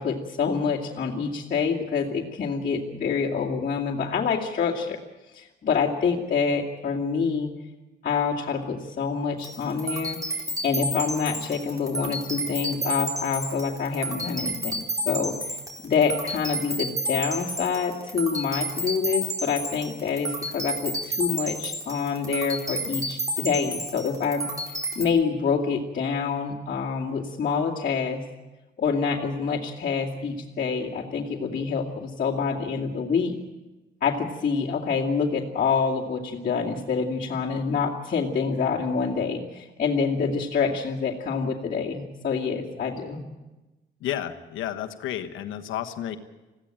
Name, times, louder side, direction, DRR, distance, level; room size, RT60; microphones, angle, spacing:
voice 1, 0.0-5.0 5.3-7.5 8.0-10.2 10.6-28.2 28.8-33.3 34.0-43.2, left 5 dB, 45° left, -6 dB, 2.5 m, -27 dB
sound 1, 9.4-25.0, equal, 15° right, 4.6 m, -31 dB
voice 2, 44.0-46.2, left 11 dB, 85° left, 7 dB, 1.3 m, -31 dB
20.5 x 15.5 x 8.9 m, 1.1 s
cardioid pair, 90°, 20 cm